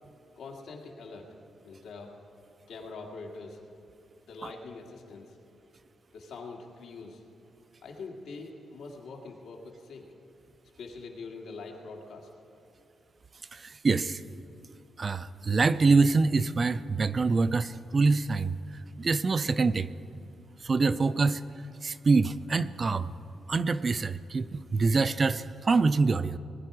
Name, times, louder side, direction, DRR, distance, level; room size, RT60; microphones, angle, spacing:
voice 1, 0.4-1.3 1.6-2.1 2.7-3.6 4.2-5.4 6.1-7.2 7.8-10.1 10.8-12.3, left 3 dB, 90° left, 0 dB, 2.0 m, -43 dB
voice 2, 13.5-14.2 15.0-18.6 19.0-19.9 20.6-21.4 21.8-23.1 23.5-26.4, right 4 dB, 30° right, 14 dB, 0.3 m, -25 dB
20.0 x 10.5 x 4.9 m, 2.7 s
wide cardioid pair, 180°, 0 cm